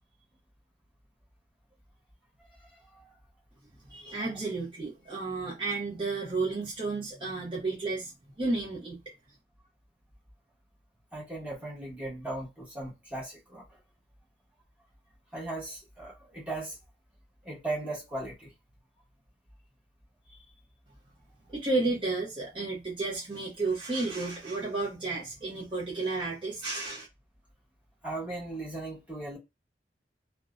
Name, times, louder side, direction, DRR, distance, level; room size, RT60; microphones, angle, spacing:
voice 1, 2.6-3.1 11.1-13.8 15.3-16.8 17.4-18.5 20.3-20.4 28.0-29.4, right 2 dB, 10° right, 1.2 m, -38 dB
voice 2, 3.9-9.0 21.5-27.1, right 3 dB, 30° right, 0.7 m, -32 dB
2.5 x 2.1 x 2.4 m
head